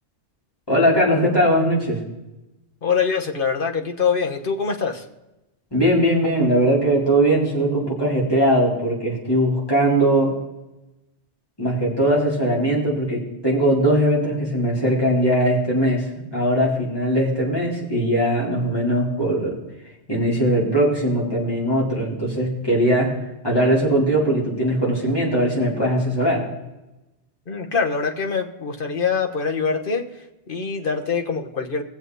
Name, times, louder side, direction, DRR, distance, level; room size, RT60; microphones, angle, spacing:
voice 1, 0.7-2.0 5.7-10.3 11.6-16.1 16.3-19.6 20.1-23.1 23.4-26.4, right 1 dB, 20° left, -5 dB, 4.1 m, -20 dB
voice 2, 2.8-5.0 27.5-31.8, left 5 dB, 50° left, 4 dB, 1.4 m, -24 dB
20.5 x 7.9 x 4.1 m, 0.98 s
omnidirectional pair, 1.2 m